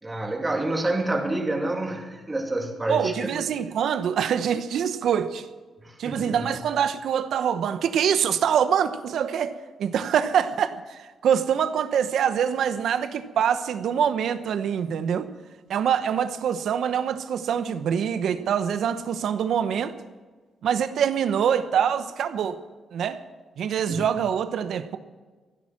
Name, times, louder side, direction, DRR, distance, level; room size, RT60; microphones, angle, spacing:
voice 1, 0.0-3.3 5.8-6.5 23.9-24.1, right 2 dB, 20° right, 2.8 m, -28 dB
voice 2, 2.9-5.5 6.0-15.3 15.7-19.9 20.6-22.6 22.9-23.2 23.6-25.0, right 8 dB, 80° right, 0.9 m, -25 dB
15.5 x 12.0 x 6.1 m
cardioid pair, 90°, 0 cm